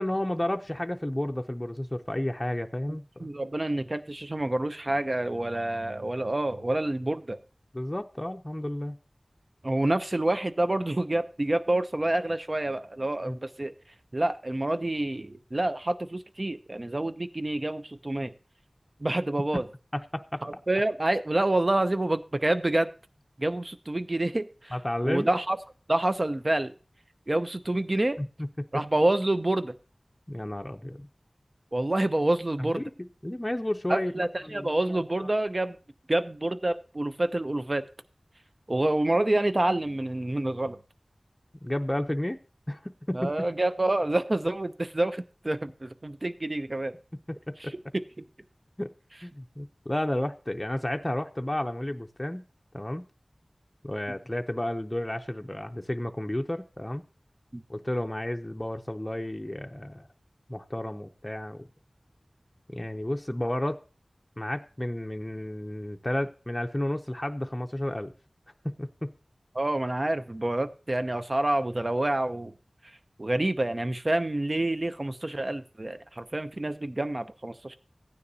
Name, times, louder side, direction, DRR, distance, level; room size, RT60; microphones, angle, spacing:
voice 1, 0.0-3.3 7.7-9.0 13.2-13.4 19.9-20.4 24.7-25.3 28.2-28.3 28.6-28.8 30.3-31.1 32.7-35.0 41.6-42.4 42.7-43.3 47.3-47.7 48.8-48.9 49.2-52.4 52.7-53.1 53.8-57.0 57.7-60.0 60.5-61.6 62.7-63.8 64.4-68.1 68.6-69.1, left 1 dB, 20° left, 4 dB, 0.6 m, -32 dB
voice 2, 3.2-7.4 9.6-13.7 14.1-18.3 19.0-19.6 20.4-22.9 23.4-24.7 25.0-25.6 25.9-26.7 27.3-28.2 28.7-29.7 31.7-32.8 33.9-35.8 36.1-37.8 38.7-40.8 43.1-46.9 47.6-47.7 57.5-57.6 69.5-72.5 73.2-77.8, right 1 dB, 45° right, 10 dB, 0.6 m, -27 dB
15.0 x 9.6 x 2.8 m, 0.37 s
wide cardioid pair, 60°, 0 cm